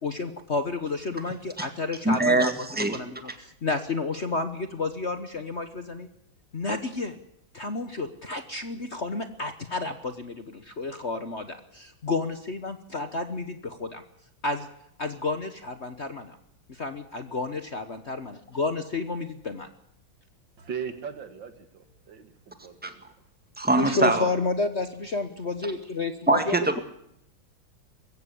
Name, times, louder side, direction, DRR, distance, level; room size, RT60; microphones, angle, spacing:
voice 1, 0.0-2.5 2.9-6.1 6.5-7.2 7.5-14.0 14.4-14.7 15.0-16.4 16.7-19.7 23.8-26.8, left 3 dB, 40° left, 9 dB, 1.2 m, -31 dB
voice 2, 2.1-3.0 22.8-22.9 23.6-24.3 26.3-26.8, right 2 dB, 5° right, 7 dB, 1.8 m, -23 dB
voice 3, 20.6-23.0, right 7 dB, 65° right, 9 dB, 2.5 m, -39 dB
21.5 x 15.5 x 8.4 m, 0.76 s
omnidirectional pair, 2.2 m